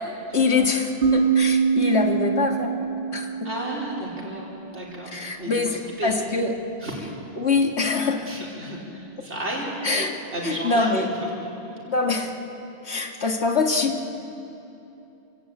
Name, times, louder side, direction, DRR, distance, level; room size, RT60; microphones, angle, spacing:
voice 1, 0.3-3.3 5.1-6.5 7.4-8.3 9.8-10.2 10.4-11.1 11.9-12.3 12.9-14.1, left 4 dB, 70° left, 3 dB, 2.2 m, -24 dB
sound 1, 1.0-4.6, right 5 dB, 50° right, 2.0 m, -24 dB
voice 2, 3.4-4.5 4.7-5.1 5.4-6.1 6.8-7.0 8.3-10.0 10.3-11.0, right 1 dB, 80° right, -5 dB, 4.6 m, -33 dB
28.0 x 16.0 x 8.9 m, 2.9 s
omnidirectional pair, 1.2 m